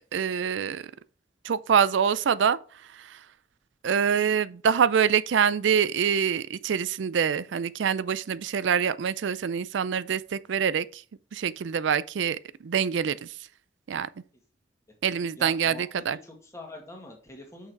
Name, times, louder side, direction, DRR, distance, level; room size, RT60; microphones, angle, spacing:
voice 1, 0.1-0.9 1.4-2.6 3.0-3.2 3.8-11.0 11.3-13.3 13.9-14.1 15.0-16.2, right 7 dB, 75° right, 0.4 m, -25 dB
voice 2, 15.3-15.8 16.2-17.7, left 2 dB, 15° left, 1.9 m, -44 dB
6.4 x 6.0 x 4.6 m
head